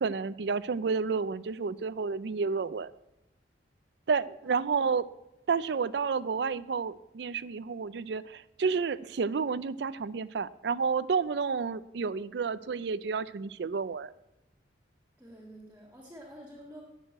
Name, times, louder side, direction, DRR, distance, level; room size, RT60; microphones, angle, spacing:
voice 1, 0.0-2.9 4.1-5.0 5.5-14.1, right 5 dB, 70° right, 16 dB, 0.4 m, -30 dB
voice 2, 4.4-5.0 15.2-16.8, equal, 10° right, -1 dB, 1.7 m, -49 dB
12.0 x 6.3 x 8.6 m, 0.89 s
head